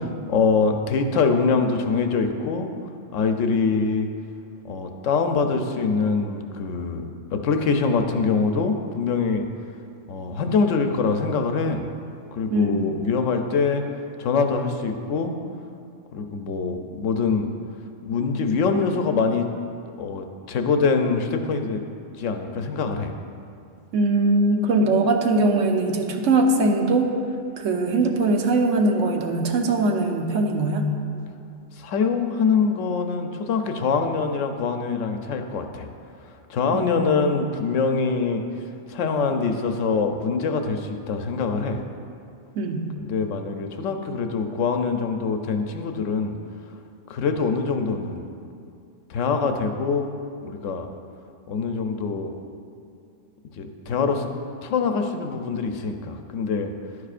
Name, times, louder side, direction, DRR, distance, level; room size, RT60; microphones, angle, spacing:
voice 1, 0.0-2.7 3.1-4.1 4.6-9.5 10.1-11.8 12.3-13.9 14.2-15.4 16.1-17.5 18.1-19.5 20.0-21.8 22.2-23.1 31.7-35.9 36.2-41.8 43.0-46.3 47.1-48.2 49.1-50.2 50.4-50.9 51.5-52.3 53.6-54.3 54.6-56.7, left 4 dB, 80° left, 6 dB, 1.0 m, -24 dB
voice 2, 23.9-27.1 27.6-30.8 36.7-37.2 42.6-42.9, right 2 dB, 80° right, 3 dB, 1.1 m, -21 dB
11.0 x 9.6 x 2.5 m, 2.5 s
omnidirectional pair, 1.3 m